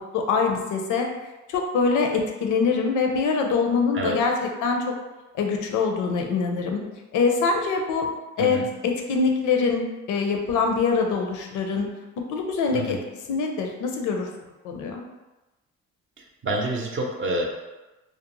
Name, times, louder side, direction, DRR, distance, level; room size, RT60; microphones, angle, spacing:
voice 1, 0.1-1.1 1.5-5.0 5.3-6.8 7.1-8.1 8.4-11.9 12.3-13.0 13.3-14.3 14.6-15.0, left 4 dB, 80° left, 3 dB, 0.5 m, -24 dB
voice 2, 16.2-17.4, right 1 dB, 40° right, 0 dB, 0.6 m, -28 dB
2.5 x 2.0 x 2.9 m, 1.1 s
cardioid pair, 90°, 30 cm